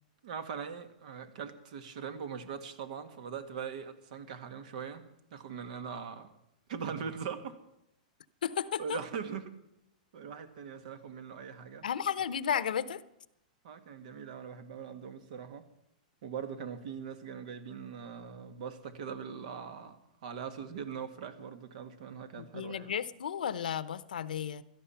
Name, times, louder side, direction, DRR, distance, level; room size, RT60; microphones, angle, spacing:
voice 1, 0.2-5.0 5.3-6.3 6.7-7.6 8.8-9.6 10.1-11.9 13.6-15.7 16.2-22.9, right 7 dB, 65° right, 9 dB, 1.8 m, -41 dB
voice 2, 8.4-9.0 11.8-13.0 22.4-24.6, left 8 dB, 85° left, 16 dB, 0.8 m, -33 dB
17.0 x 13.0 x 5.8 m, 0.83 s
hypercardioid pair, 135°, 4 cm